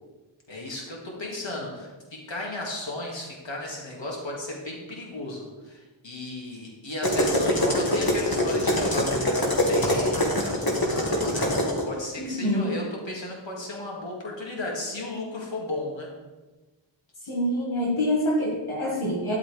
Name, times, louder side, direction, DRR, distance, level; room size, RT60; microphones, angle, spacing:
voice 1, 0.5-16.1, left 2 dB, 65° left, -2 dB, 2.4 m, -35 dB
sound 1, 7.0-11.8, left 1 dB, 50° left, 2.1 m, -24 dB
voice 2, 12.2-12.8 17.2-19.3, equal, 90° left, -4 dB, 2.0 m, -26 dB
11.0 x 8.3 x 3.4 m, 1.2 s
wide cardioid pair, 45°, 48 cm